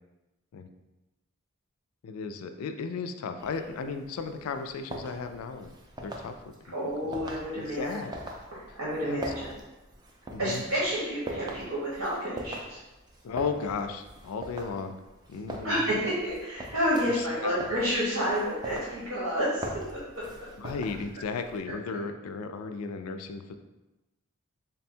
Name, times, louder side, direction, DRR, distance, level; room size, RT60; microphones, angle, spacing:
voice 1, 2.0-5.7 6.0-6.4 6.8-7.1 7.7-8.1 9.0-9.2 10.3-10.6 13.2-14.9 15.3-15.8 17.2-17.6 20.6-23.5, left 5 dB, 90° left, 8 dB, 0.3 m, -35 dB
sound 1, 3.4-21.6, right 1 dB, 20° right, 0.3 m, -43 dB
voice 2, 6.7-7.9 8.5-9.5 10.4-12.8 15.6-20.2, equal, 80° right, -7 dB, 0.9 m, -30 dB
3.5 x 2.2 x 4.2 m, 1.0 s
head